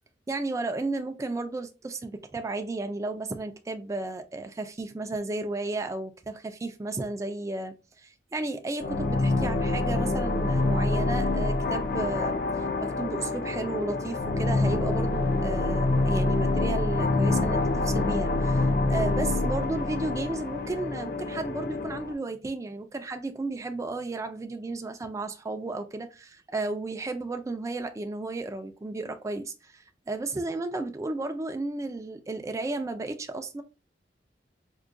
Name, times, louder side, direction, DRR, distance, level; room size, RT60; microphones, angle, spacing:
voice 1, 0.3-33.6, right 2 dB, 15° right, 0.3 m, -33 dB
sound 1, 8.8-22.1, left 2 dB, 55° left, 0.5 m, -26 dB
4.5 x 2.2 x 2.5 m
head